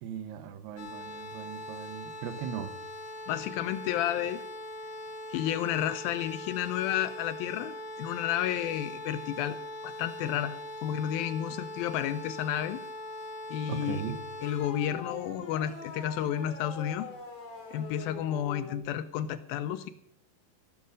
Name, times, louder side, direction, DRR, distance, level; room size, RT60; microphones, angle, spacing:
voice 1, 0.0-2.7 13.7-14.2, right 7 dB, 80° right, 13 dB, 2.9 m, -38 dB
sound 1, 0.8-18.8, left 2 dB, 45° left, 2.9 m, -42 dB
voice 2, 3.3-4.4 5.3-9.6 9.8-10.6 10.8-12.8 13.5-14.1 14.4-17.1 17.7-19.9, left 11 dB, 80° left, 14 dB, 2.2 m, -31 dB
16.5 x 8.2 x 6.5 m, 0.72 s
omnidirectional pair, 4.6 m